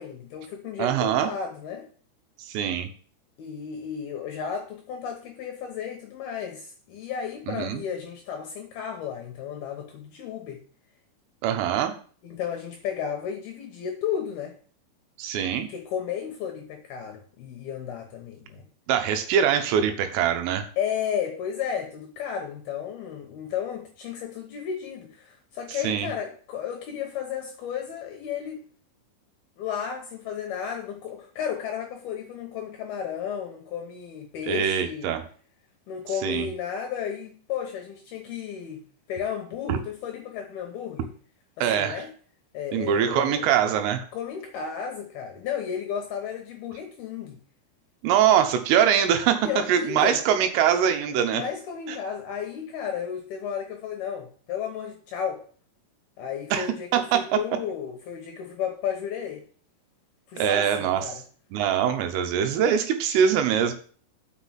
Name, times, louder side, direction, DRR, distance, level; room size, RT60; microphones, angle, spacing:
voice 1, 0.0-1.9 3.4-10.6 12.2-14.5 15.7-18.7 20.8-28.6 29.6-35.1 35.9-38.8 39.1-41.1 41.6-42.1 42.5-43.5 44.1-47.4 49.4-50.2 51.3-55.4 56.2-59.4 60.3-61.2, left 8 dB, 70° left, 2.4 m, -33 dB
voice 2, 0.8-1.3 2.5-2.9 7.5-7.8 11.4-11.9 15.2-15.7 18.9-20.7 25.8-26.1 34.5-35.2 36.2-36.5 39.7-39.8 41.6-42.0 42.7-44.0 48.0-51.4 51.9-52.0 56.5-56.7 56.9-57.2 60.4-61.1 61.5-63.7, right 9 dB, 80° right, 3.5 m, -23 dB
6.5 x 5.9 x 7.3 m
omnidirectional pair, 5.8 m